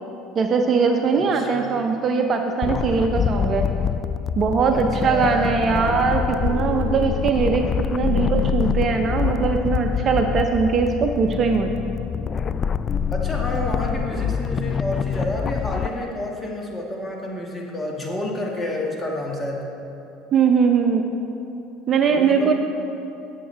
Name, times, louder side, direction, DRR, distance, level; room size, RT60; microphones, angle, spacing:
voice 1, 0.3-3.7 4.4-11.7 20.3-21.0 21.9-22.5, right 5 dB, 40° right, 4 dB, 0.8 m, -21 dB
voice 2, 1.1-1.7 4.7-5.5 13.1-19.6 22.0-22.5, left 1 dB, 20° left, -1 dB, 2.0 m, -29 dB
sound 1, 2.6-15.9, left 7 dB, 35° left, 0.3 m, -25 dB
16.5 x 7.4 x 3.4 m, 2.8 s
supercardioid pair, 90°, 0 cm